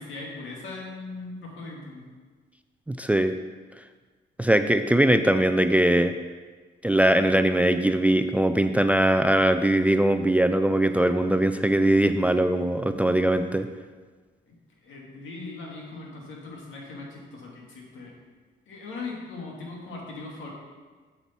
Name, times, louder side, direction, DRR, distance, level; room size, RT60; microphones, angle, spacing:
voice 1, 0.0-2.1 14.5-14.6 14.8-18.2 18.7-20.5, left 3 dB, 75° left, -2 dB, 2.3 m, -39 dB
voice 2, 2.9-3.3 4.4-6.1 6.8-13.7, right 1 dB, 5° right, 9 dB, 0.4 m, -21 dB
7.9 x 7.1 x 4.5 m, 1.4 s
cardioid pair, 90°, 20 cm